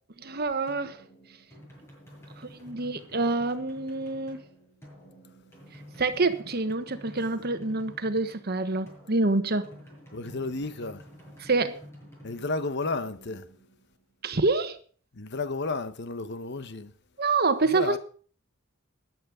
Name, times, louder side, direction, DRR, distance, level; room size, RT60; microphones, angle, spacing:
voice 1, 0.2-1.0 2.5-4.4 6.0-9.7 11.4-11.7 14.2-14.8 17.2-18.0, right 3 dB, 50° right, 1.3 m, -26 dB
sound 1, 0.7-14.2, equal, 15° left, 7.7 m, -50 dB
voice 2, 10.1-11.1 12.2-13.5 15.1-16.9 17.6-18.0, left 3 dB, 55° left, 1.0 m, -32 dB
14.5 x 11.0 x 5.1 m
head